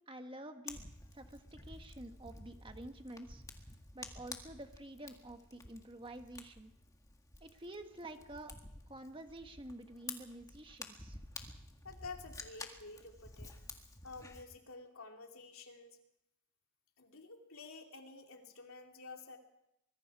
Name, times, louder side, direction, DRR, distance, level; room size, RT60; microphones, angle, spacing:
voice 1, 0.1-0.8 1.1-3.4 3.9-6.7 7.4-8.5 8.9-11.2, right 1 dB, 25° right, 6 dB, 1.6 m, -49 dB
Fire, 0.7-14.4, left 3 dB, 15° left, 1.8 m, -51 dB
voice 2, 11.8-13.5 14.0-16.0 17.0-19.4, left 3 dB, 70° left, 3 dB, 2.9 m, -50 dB
24.5 x 21.5 x 4.8 m, 0.83 s
head